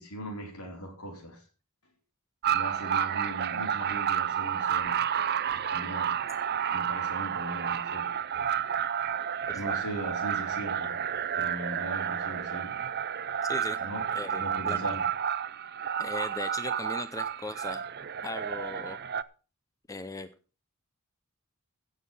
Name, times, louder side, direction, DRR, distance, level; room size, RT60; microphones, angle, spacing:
voice 1, 0.0-1.4 2.5-5.0 5.7-6.2 6.7-8.2 9.5-11.0 11.3-12.9 13.8-14.1 14.4-15.1, equal, 75° left, 4.3 m, -39 dB
sound 1, 2.4-19.2, right 8 dB, 45° right, 0.5 m, -31 dB
voice 2, 9.5-9.8 13.4-13.8 14.1-15.0 16.0-17.9 18.2-19.0 19.9-20.3, left 2 dB, 15° left, 0.6 m, -38 dB
16.5 x 6.5 x 5.5 m
head